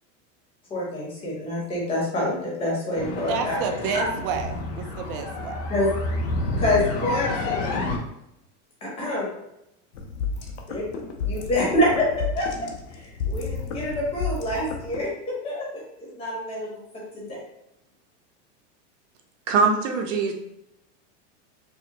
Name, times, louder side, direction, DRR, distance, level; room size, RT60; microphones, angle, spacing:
voice 1, 0.7-4.0 5.7-5.9 6.6-7.8 8.8-9.3 10.7-10.9 11.2-12.1 12.4-12.5 12.9-15.8 16.2-16.7 17.1-17.4, left 1 dB, 15° left, -5 dB, 1.0 m, -26 dB
sound 1, 3.0-8.0, left 2 dB, 35° left, 0.4 m, -29 dB
voice 2, 3.3-5.6, right 6 dB, 45° right, 6 dB, 0.5 m, -30 dB
sound 2, 9.9-15.1, left 5 dB, 65° left, 0.7 m, -32 dB
voice 3, 19.5-20.3, right 4 dB, 75° right, 3 dB, 0.8 m, -22 dB
4.7 x 2.2 x 3.0 m, 0.82 s
supercardioid pair, 175°, 37 cm